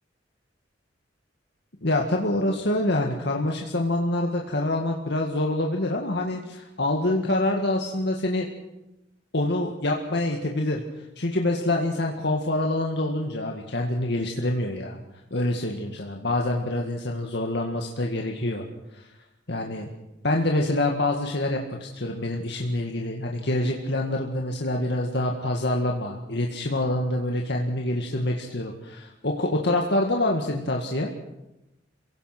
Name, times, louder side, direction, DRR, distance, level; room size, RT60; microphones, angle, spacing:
voice 1, 1.8-8.5 9.3-10.8 11.2-15.0 15.3-18.6 18.9-19.0 19.5-19.9 20.2-31.1, left 1 dB, 60° left, 1 dB, 1.9 m, -26 dB
27.0 x 17.5 x 6.0 m, 0.92 s
head